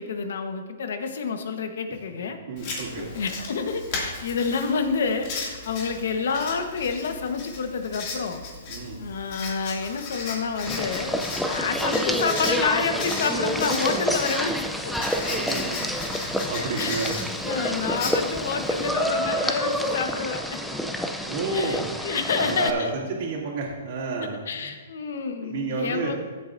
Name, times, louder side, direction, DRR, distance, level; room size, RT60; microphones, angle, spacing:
voice 1, 0.0-2.4 3.1-8.4 9.0-14.9 16.8-16.9 17.4-20.6 21.5-22.9 24.5-26.2, left 5 dB, 70° left, 7 dB, 1.2 m, -28 dB
voice 2, 2.5-3.0 8.7-9.0 15.2-15.7 16.0-17.1 21.3-21.8 22.2-24.7 25.4-26.1, right 3 dB, 50° right, -4 dB, 2.5 m, -30 dB
Writing, 2.6-18.9, left 3 dB, 40° left, 2.4 m, -36 dB
sound 1, 10.7-22.7, equal, ahead, 0.5 m, -28 dB
14.5 x 7.9 x 2.6 m, 1.4 s
hypercardioid pair, 160°, 0 cm